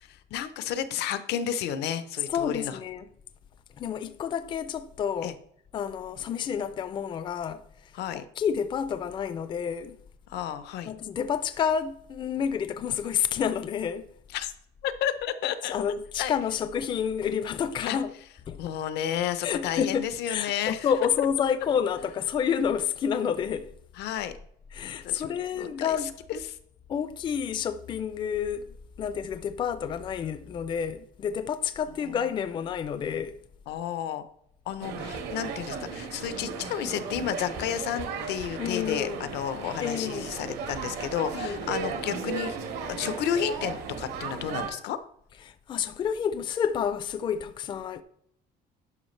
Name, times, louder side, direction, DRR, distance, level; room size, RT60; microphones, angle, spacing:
voice 1, 0.3-2.8 5.2-5.3 8.0-8.2 10.3-10.9 14.3-14.5 14.8-15.7 16.2-16.3 17.9-18.0 18.6-20.9 24.0-24.3 24.8-25.3 25.6-26.0 26.3-26.6 33.7-34.2 34.7-42.6 42.9-45.0, left 9 dB, 85° left, 0.7 m, -31 dB
voice 2, 2.3-3.1 3.8-5.4 5.7-7.9 8.4-10.0 10.9-14.1 15.6-18.1 18.5-18.6 19.4-23.7 24.7-26.1 26.9-33.4 38.6-39.3 39.8-40.4 41.3-41.6 45.4-48.0, left 8 dB, 30° left, 0.4 m, -29 dB
sound 1, 34.8-44.7, right 5 dB, 85° right, 1.4 m, -36 dB
10.5 x 5.8 x 3.2 m
cardioid pair, 170°, 17 cm